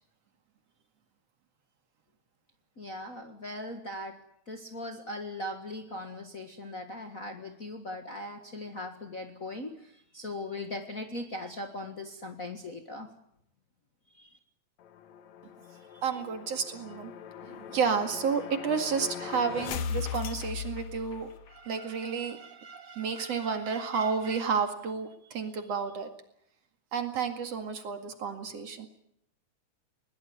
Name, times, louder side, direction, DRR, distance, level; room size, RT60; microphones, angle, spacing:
voice 1, 2.8-4.2 4.5-13.1 14.1-14.4, left 1 dB, 35° left, 4 dB, 1.7 m, -39 dB
sound 1, 14.8-21.6, left 7 dB, 70° left, 2.3 m, -39 dB
voice 2, 16.0-17.1 17.4-26.1 26.9-28.9, right 6 dB, 55° right, 6 dB, 3.0 m, -31 dB
21.0 x 20.0 x 9.6 m, 0.74 s
omnidirectional pair, 3.5 m